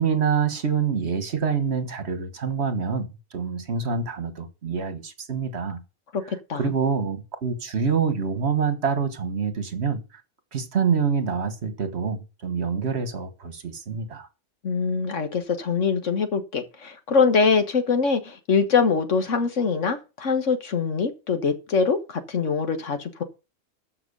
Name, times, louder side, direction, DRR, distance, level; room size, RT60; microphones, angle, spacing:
voice 1, 0.0-5.8 6.5-10.0 10.5-14.3, right 6 dB, 60° right, 1.7 m, -26 dB
voice 2, 6.1-6.6 14.6-23.2, left 5 dB, 80° left, 1.8 m, -23 dB
13.5 x 5.9 x 5.4 m
omnidirectional pair, 1.2 m